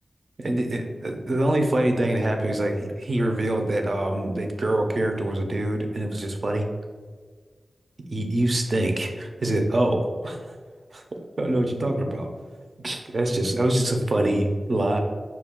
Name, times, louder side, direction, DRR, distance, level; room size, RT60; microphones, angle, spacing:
voice 1, 0.4-6.7 8.1-10.5 10.9-11.0 11.4-12.3 12.8-15.0, right 1 dB, 50° right, 3 dB, 0.6 m, -25 dB
5.7 x 2.3 x 3.5 m, 1.5 s
wide cardioid pair, 90°, 0 cm